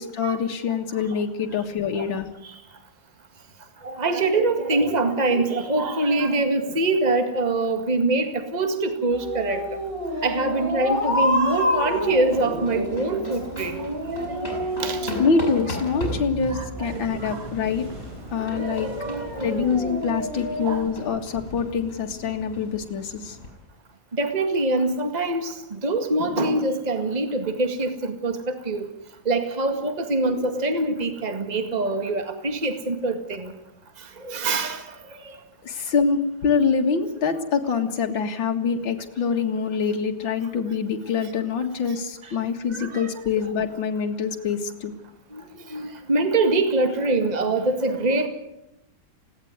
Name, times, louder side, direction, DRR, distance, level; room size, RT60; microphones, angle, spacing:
voice 1, 0.0-2.3 15.2-17.8 18.3-18.9 19.4-23.4 35.6-44.9, left 5 dB, 70° left, 3 dB, 2.6 m, -25 dB
voice 2, 3.8-9.6 10.2-15.0 16.5-17.4 18.6-19.7 20.6-20.8 24.2-28.4 28.7-28.9 29.3-33.5 34.2-34.8 42.8-43.1 45.7-48.3, right 2 dB, 20° right, 7 dB, 2.0 m, -24 dB
sound 1, 9.1-20.8, left 1 dB, 40° right, 4.4 m, -30 dB
sound 2, 11.7-23.5, left 2 dB, 30° left, 7.7 m, -38 dB
sound 3, 16.8-22.5, right 1 dB, 85° right, 4.6 m, -43 dB
20.5 x 17.0 x 9.6 m, 0.87 s
omnidirectional pair, 2.2 m